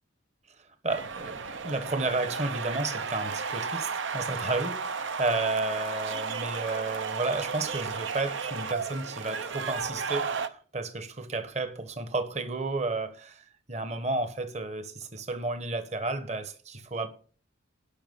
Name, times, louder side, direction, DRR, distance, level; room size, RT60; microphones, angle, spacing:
voice 1, 0.8-17.1, right 3 dB, 35° right, 1.3 m, -32 dB
sound 1, 0.9-10.5, right 5 dB, 65° right, 0.8 m, -34 dB
10.5 x 6.0 x 7.0 m
head